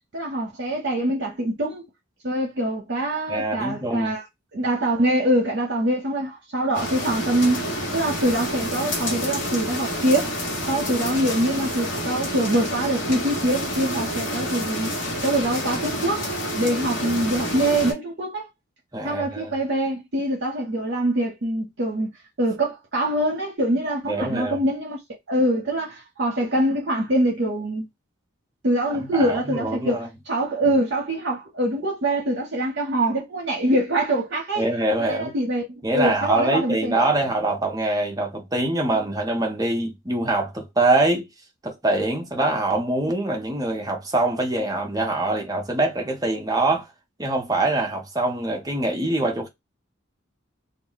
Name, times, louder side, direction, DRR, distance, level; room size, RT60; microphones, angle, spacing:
voice 1, 0.1-1.9 2.2-4.2 4.5-10.3 10.7-14.9 15.2-18.5 19.0-22.1 22.4-25.0 25.3-27.9 28.6-34.7 35.0-36.9, right 1 dB, 55° right, 0.7 m, -24 dB
voice 2, 3.3-4.1 18.9-19.6 24.1-24.6 29.0-30.1 34.6-35.3 35.8-41.3 41.6-46.9 47.2-49.5, right 2 dB, 20° right, 0.6 m, -24 dB
sound 1, 6.7-17.9, equal, 55° left, 1.1 m, -28 dB
2.3 x 2.1 x 3.8 m
head